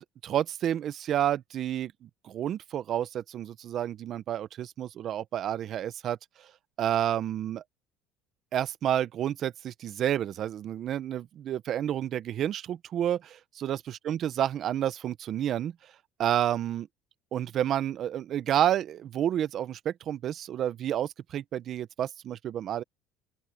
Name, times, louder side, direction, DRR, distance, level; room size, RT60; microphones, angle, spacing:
voice 1, 0.2-6.2 6.8-7.6 8.5-13.8 14.0-15.7 16.2-16.9 17.3-22.8, right 11 dB, 50° right, 1.0 m, -30 dB
open air
cardioid pair, 115°, 0 cm